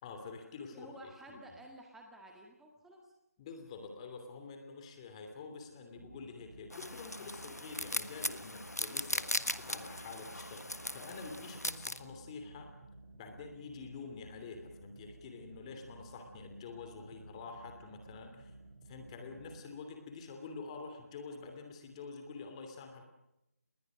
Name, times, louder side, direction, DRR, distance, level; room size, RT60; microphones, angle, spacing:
voice 1, 0.0-0.9 1.3-1.4 3.4-12.7 13.1-18.5 18.8-23.0, left 4 dB, 20° left, 5 dB, 3.0 m, -47 dB
voice 2, 0.6-3.1, right 1 dB, 5° right, 1 dB, 1.8 m, -53 dB
sound 1, 6.0-19.6, right 2 dB, 35° right, 6.6 m, -55 dB
sound 2, 6.7-12.0, left 1 dB, 85° left, 1.5 m, -39 dB
27.5 x 21.0 x 6.4 m, 0.87 s
figure-of-eight pair, 150°, 8 cm